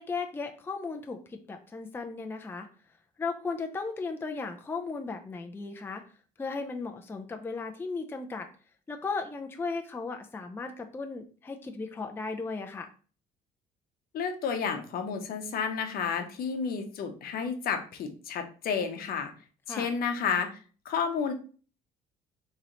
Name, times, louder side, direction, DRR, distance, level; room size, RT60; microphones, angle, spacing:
voice 1, 0.0-2.7 3.2-6.0 6.4-8.5 8.9-12.9 19.7-19.9, left 4 dB, 15° left, 5 dB, 0.4 m, -36 dB
voice 2, 14.1-19.3 19.7-20.6 20.8-21.3, left 6 dB, 65° left, 5 dB, 0.8 m, -31 dB
3.1 x 2.9 x 3.8 m, 0.39 s
cardioid pair, 110°, 17 cm